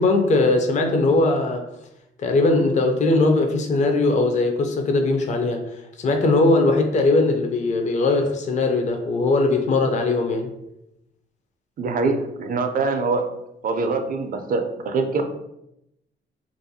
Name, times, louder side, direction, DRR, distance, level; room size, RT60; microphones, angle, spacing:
voice 1, 0.0-1.6 2.2-10.5, left 2 dB, 35° left, 5 dB, 0.4 m, -20 dB
voice 2, 11.8-13.2 13.6-15.2, right 3 dB, 45° right, 6 dB, 0.4 m, -24 dB
2.5 x 2.2 x 2.6 m, 0.83 s
cardioid pair, 90°, 20 cm